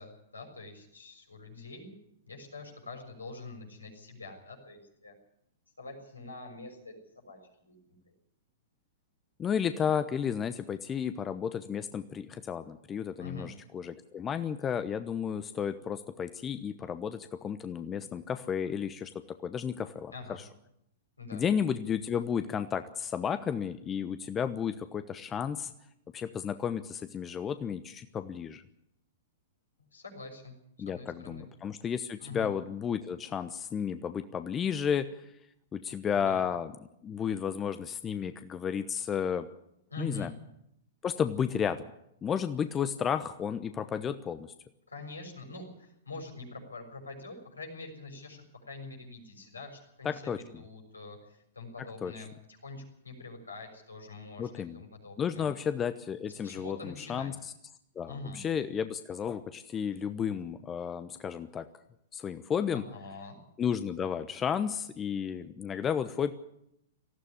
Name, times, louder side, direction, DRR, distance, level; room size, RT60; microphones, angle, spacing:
voice 1, 0.0-2.0 2.3-5.1 5.8-8.1 13.2-13.5 20.1-20.4 21.2-21.4 29.9-31.5 32.2-32.5 36.1-36.4 39.9-40.3 44.9-55.5 56.3-57.3 58.1-58.4 62.7-63.4, left 3 dB, 85° left, 2 dB, 6.5 m, -45 dB
voice 2, 9.4-20.1 21.3-25.7 26.1-28.6 30.8-35.2 35.7-36.7 37.0-39.5 40.0-40.3 41.0-41.9 42.2-44.5 50.0-50.4 52.0-52.1 54.4-54.8 55.2-57.3 57.9-61.7 62.1-62.8 63.6-66.3, left 7 dB, 20° left, 11 dB, 1.0 m, -32 dB
19.0 x 15.0 x 9.8 m, 0.78 s
figure-of-eight pair, 105°, 0 cm